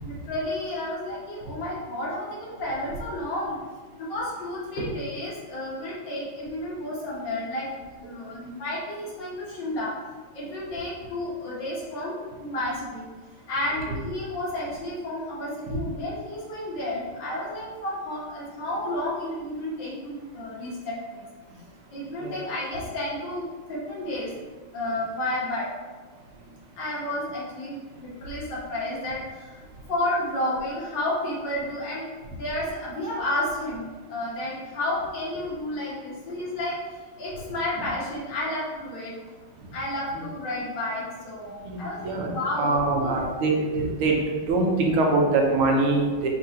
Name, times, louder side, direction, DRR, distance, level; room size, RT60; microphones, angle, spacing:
voice 1, 0.0-3.6 4.0-7.7 8.0-9.9 10.3-13.0 13.5-21.2 21.9-24.3 24.7-25.7 26.8-29.6 29.9-32.1 32.4-36.8 37.2-39.1 39.7-43.2, left 1 dB, 60° left, -6 dB, 1.6 m, -31 dB
voice 2, 41.6-44.1 44.5-46.3, right 3 dB, 80° right, 0 dB, 1.6 m, -24 dB
5.4 x 3.2 x 2.7 m, 1.4 s
omnidirectional pair, 2.4 m